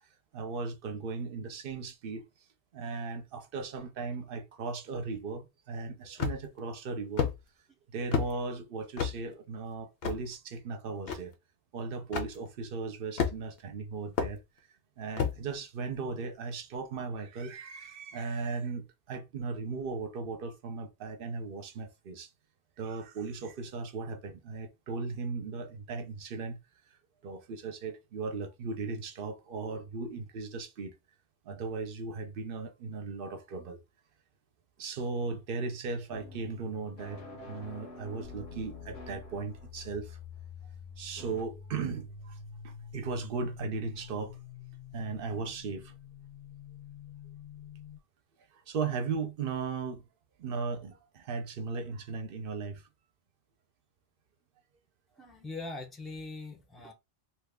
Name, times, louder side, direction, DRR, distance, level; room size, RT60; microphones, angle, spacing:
voice 1, 0.3-2.2 2.7-7.3 7.9-11.3 11.7-14.4 15.0-22.3 22.8-26.6 27.2-30.9 31.4-33.8 34.8-37.2 37.5-40.2 41.0-42.4 42.6-44.4 44.9-45.9 48.7-50.0 50.4-52.8, right 4 dB, 65° right, 0.8 m, -37 dB
sound 1, 6.2-6.6 7.2-7.4 8.1-8.3 9.0-9.2 10.0-10.2 11.1-11.2 12.1-12.3 13.2-13.6 14.2-14.3 15.2-15.4, left 7 dB, 70° left, 1.0 m, -29 dB
sound 2, 36.1-40.1 41.2-41.4, left 2 dB, 85° left, 1.2 m, -48 dB
sound 3, 38.2-48.0, left 7 dB, 50° left, 0.7 m, -47 dB
voice 2, 55.2-56.9, left 3 dB, ahead, 0.5 m, -42 dB
2.9 x 2.3 x 3.4 m
omnidirectional pair, 1.1 m